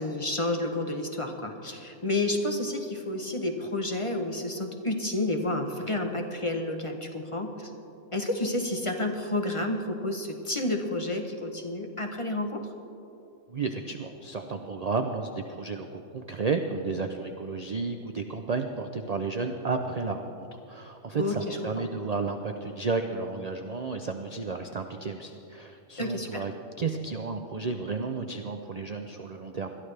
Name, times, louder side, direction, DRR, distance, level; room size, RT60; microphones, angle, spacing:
voice 1, 0.0-7.7 8.1-12.7 21.2-21.9 26.0-26.4, left 1 dB, 30° left, 4 dB, 0.8 m, -30 dB
voice 2, 13.5-26.5 26.8-29.7, right 4 dB, 65° right, 5 dB, 0.3 m, -32 dB
21.5 x 12.5 x 3.3 m, 2.8 s
omnidirectional pair, 1.5 m